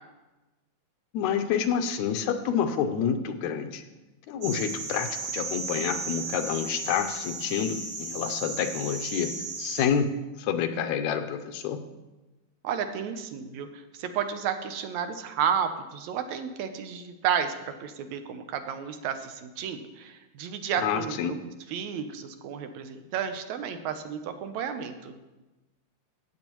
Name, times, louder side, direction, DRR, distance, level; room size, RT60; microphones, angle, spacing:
voice 1, 1.1-3.8 4.3-9.3 9.6-10.1 10.4-11.8 20.8-21.4, left 8 dB, 80° left, 8 dB, 1.9 m, -28 dB
sound 1, 4.4-9.9, right 3 dB, 55° right, 2.6 m, -35 dB
voice 2, 12.6-21.4 21.7-25.1, right 7 dB, 75° right, 8 dB, 2.0 m, -32 dB
15.0 x 8.1 x 3.0 m, 1.1 s
omnidirectional pair, 3.3 m